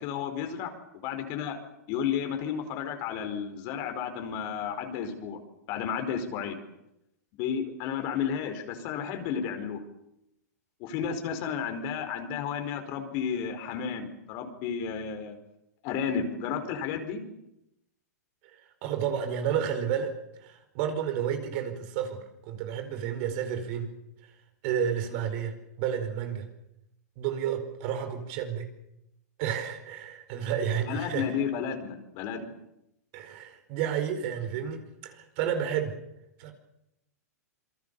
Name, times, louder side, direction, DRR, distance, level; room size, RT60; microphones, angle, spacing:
voice 1, 0.0-1.6 1.9-5.4 5.7-6.6 7.4-9.8 10.8-15.4 15.8-17.2 30.9-32.5, left 7 dB, 45° left, 6 dB, 4.9 m, -32 dB
voice 2, 18.8-20.1 20.4-23.9 24.6-26.5 27.2-28.7 29.4-31.3 33.1-35.9 36.4-36.5, right 8 dB, 50° right, 7 dB, 5.0 m, -31 dB
27.5 x 23.0 x 7.1 m, 0.87 s
hypercardioid pair, 120°, 9 cm